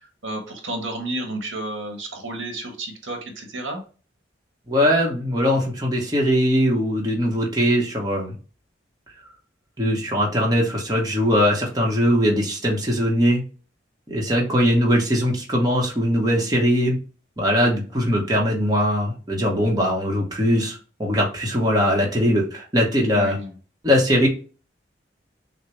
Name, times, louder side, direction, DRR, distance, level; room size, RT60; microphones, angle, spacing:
voice 1, 0.0-3.8 23.1-23.5, right 1 dB, 85° right, 3 dB, 1.3 m, -31 dB
voice 2, 4.7-8.3 9.8-13.4 14.1-17.0 17.4-23.4 23.8-24.3, equal, 20° right, -1 dB, 0.9 m, -21 dB
6.4 x 2.1 x 3.2 m, 0.36 s
head